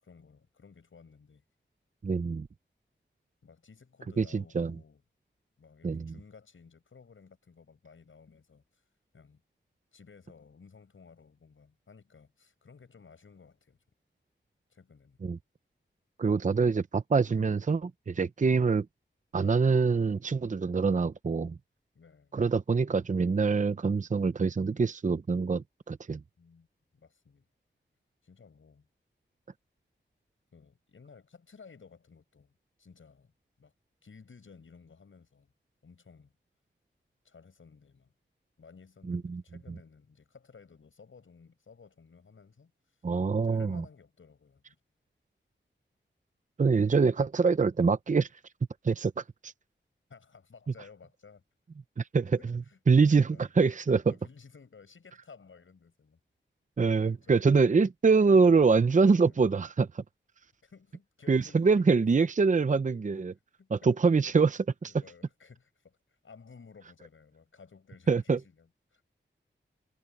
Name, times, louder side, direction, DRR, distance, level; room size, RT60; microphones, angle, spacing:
voice 1, 0.0-1.4 3.4-5.0 5.6-8.8 9.1-9.4 9.9-13.8 14.7-15.2 18.6-18.7 21.9-22.4 26.4-26.7 26.9-27.5 28.2-28.9 30.5-32.5 32.8-33.3 33.6-33.7 34.0-35.5 35.8-36.3 37.2-38.1 38.6-43.0 43.4-44.8 50.1-51.4 52.2-52.8 53.1-53.5 54.1-56.2 57.0-57.7 58.4-58.5 59.2-59.4 60.6-62.1 63.2-63.3 63.6-63.9 64.8-69.0, left 5 dB, 80° left, 7.6 m, -55 dB
voice 2, 2.0-2.5 4.2-4.7 5.8-6.1 15.2-15.4 16.2-18.9 19.3-21.5 22.3-26.2 39.1-39.4 43.0-43.8 46.6-48.3 48.8-49.5 52.0-52.2 52.5-52.6 52.9-54.1 56.8-60.0 61.3-63.3 63.7-64.9 68.1-68.4, right 4 dB, 40° right, 0.6 m, -25 dB
wide cardioid pair, 85°, 20 cm